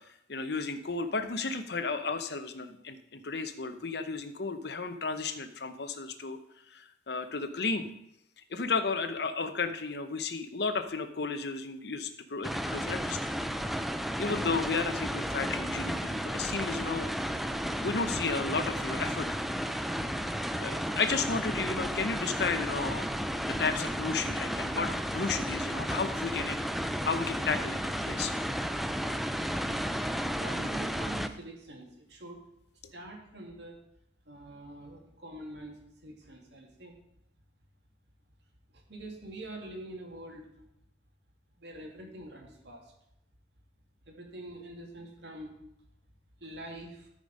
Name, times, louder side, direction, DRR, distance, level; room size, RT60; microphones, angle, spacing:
voice 1, 0.0-6.4 6.7-7.9 8.4-13.3 14.2-17.1 17.7-19.4 20.6-23.1 23.4-27.8 28.1-28.3 32.8-32.9, left 4 dB, 60° left, 9 dB, 0.8 m, -33 dB
sound 1, 12.4-31.3, equal, ahead, 0.3 m, -33 dB
voice 2, 30.3-32.4 32.9-33.8 34.3-36.9 38.9-40.5 41.6-42.8 44.1-45.5 46.4-47.1, right 1 dB, 70° right, 1 dB, 2.3 m, -45 dB
13.0 x 5.2 x 5.3 m, 0.80 s
head